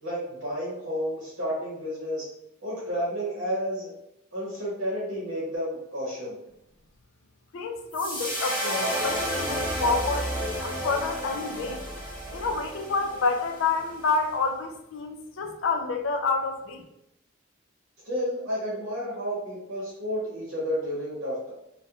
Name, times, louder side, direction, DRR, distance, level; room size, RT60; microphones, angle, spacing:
voice 1, 0.0-2.3 2.6-3.9 4.3-6.4 18.0-21.5, equal, 70° right, -6 dB, 0.8 m, -31 dB
voice 2, 7.5-10.3 10.6-11.8 12.3-16.8, left 4 dB, 70° left, 4 dB, 0.4 m, -28 dB
sound 1, 7.9-14.2, equal, 10° left, 1.1 m, -31 dB
2.8 x 2.1 x 2.3 m, 0.84 s
head